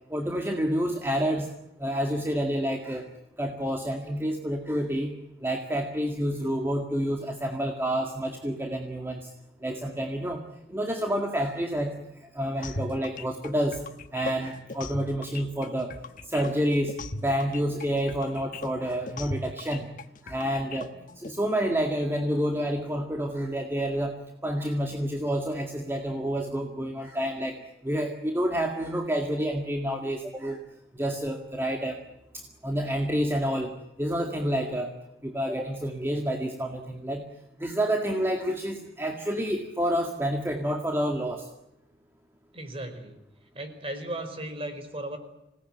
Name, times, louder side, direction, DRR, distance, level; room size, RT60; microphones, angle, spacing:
voice 1, 0.1-1.5 1.8-3.1 3.4-5.2 5.4-9.3 9.6-10.4 10.7-13.8 14.1-15.9 16.2-19.9 20.2-30.6 30.9-32.0 32.3-34.9 35.2-37.2 37.6-41.5, equal, 15° right, 2 dB, 2.0 m, -29 dB
sound 1, 12.6-21.3, left 3 dB, 50° left, 1.2 m, -38 dB
voice 2, 42.5-43.2 43.5-45.2, right 1 dB, 35° right, 7 dB, 4.8 m, -36 dB
27.0 x 18.5 x 9.1 m, 0.92 s
head